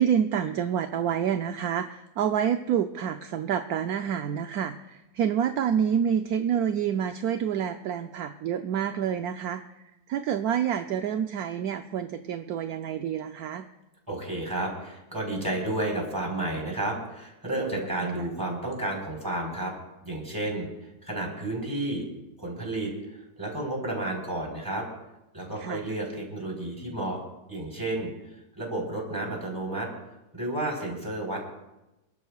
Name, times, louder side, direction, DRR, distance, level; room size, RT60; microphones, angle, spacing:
voice 1, 0.0-9.6 10.1-13.7 25.6-25.8, right 8 dB, 70° right, 7 dB, 1.0 m, -28 dB
voice 2, 14.1-19.7 20.0-22.1 22.4-24.9 25.3-27.2 27.5-28.1 28.6-29.9 30.3-31.5, right 1 dB, 10° right, -1 dB, 3.9 m, -31 dB
27.5 x 13.0 x 2.4 m, 0.97 s
omnidirectional pair, 1.8 m